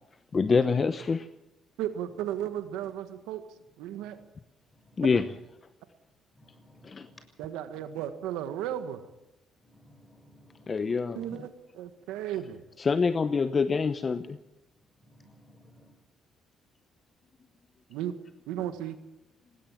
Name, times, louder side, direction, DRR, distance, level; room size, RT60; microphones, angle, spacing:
voice 1, 0.3-1.3 5.0-5.2 6.8-7.1 10.7-11.2 12.8-14.4, left 5 dB, 40° left, 11 dB, 1.0 m, -26 dB
voice 2, 1.8-3.4 3.8-4.2 7.4-9.0 11.1-12.6 17.9-18.1 18.5-19.0, right 11 dB, 85° right, 9 dB, 1.6 m, -34 dB
voice 3, 4.7-5.0 6.3-7.2 9.6-10.8 15.0-15.9, left 1 dB, 20° left, 7 dB, 6.8 m, -57 dB
19.5 x 18.5 x 7.5 m, 0.91 s
supercardioid pair, 70°, 0 cm